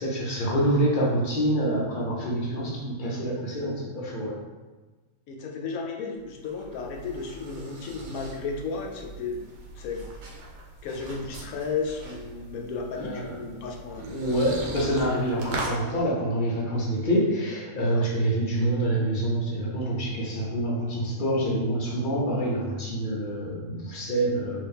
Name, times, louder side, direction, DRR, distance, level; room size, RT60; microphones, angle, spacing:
voice 1, 0.0-4.4 13.0-13.3 14.0-24.6, right 1 dB, 45° left, -3 dB, 0.7 m, -26 dB
voice 2, 5.3-9.4 9.8-10.0 10.8-14.0 17.9-18.0, left 4 dB, 75° left, 2 dB, 1.0 m, -33 dB
sound 1, 6.2-15.8, right 2 dB, 75° right, 1.2 m, -40 dB
2.9 x 2.8 x 3.5 m, 1.3 s
omnidirectional pair, 1.6 m